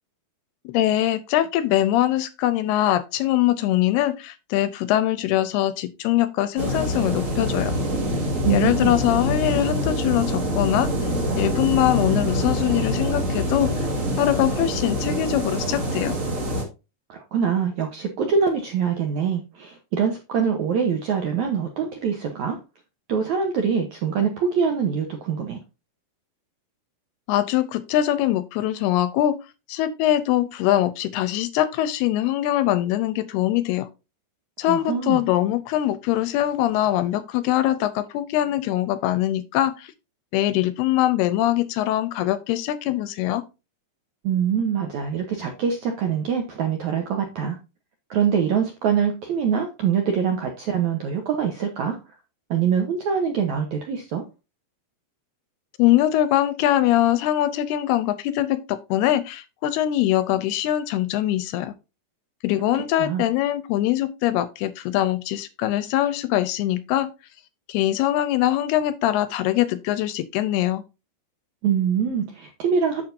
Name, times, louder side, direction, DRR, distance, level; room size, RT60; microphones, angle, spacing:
voice 1, 0.7-7.7 8.5-10.9 11.3-13.9 14.2-16.2 27.3-29.4 29.7-33.9 34.6-39.9 40.3-43.4 55.8-61.7 62.4-67.1 67.7-70.8, left 13 dB, 85° left, 2.5 m, -22 dB
sound 1, 6.6-16.6, equal, 35° right, 1.2 m, -25 dB
voice 2, 8.4-8.9 17.1-22.6 23.1-25.6 34.7-35.2 44.2-47.6 48.1-52.0 52.5-54.2 62.7-63.2 71.6-73.0, right 7 dB, 75° right, 1.7 m, -24 dB
8.8 x 7.4 x 2.7 m
omnidirectional pair, 4.9 m